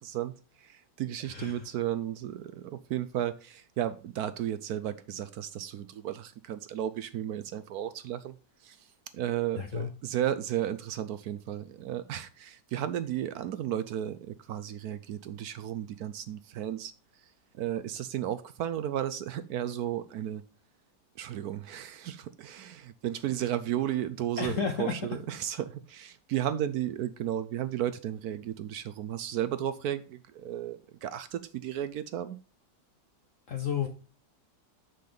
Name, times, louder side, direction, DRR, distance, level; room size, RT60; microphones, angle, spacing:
voice 1, 0.0-8.4 8.6-8.9 9.1-20.4 21.2-32.4, right 11 dB, 70° right, 1.0 m, -34 dB
voice 2, 1.2-1.7 9.6-9.9 24.4-24.9 33.5-33.9, left 7 dB, 60° left, 1.0 m, -32 dB
6.8 x 6.6 x 3.8 m
omnidirectional pair, 1.9 m